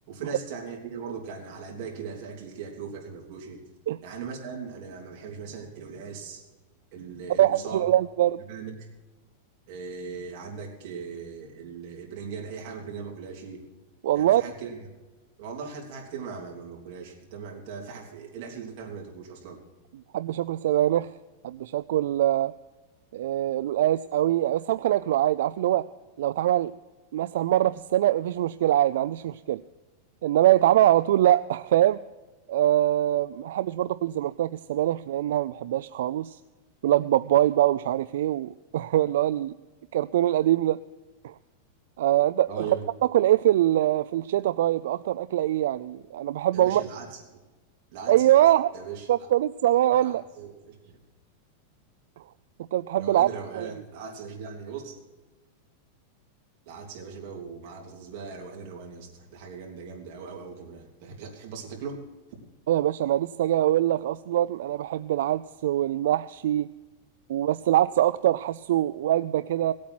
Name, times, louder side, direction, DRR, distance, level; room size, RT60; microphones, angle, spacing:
voice 1, 0.1-3.6 4.0-6.4 6.9-7.8 8.5-8.7 9.7-13.6 14.1-14.8 15.4-19.6 42.5-42.8 46.5-47.2 47.9-48.3 48.7-49.3 50.0-51.0 52.9-54.9 56.7-62.0, right 5 dB, 45° right, 0 dB, 3.2 m, -39 dB
voice 2, 7.4-8.4 14.0-14.4 20.1-21.1 21.4-22.5 23.1-25.9 26.2-26.7 27.1-29.6 30.2-32.0 32.5-36.4 36.8-39.5 39.9-40.8 41.2-41.3 42.0-42.7 43.1-46.9 48.1-48.7 49.1-50.2 52.7-53.3 53.5-53.7 62.7-66.7 67.3-69.7, right 13 dB, 70° right, 14 dB, 0.3 m, -23 dB
17.5 x 8.5 x 6.0 m, 1.2 s
supercardioid pair, 165°, 0 cm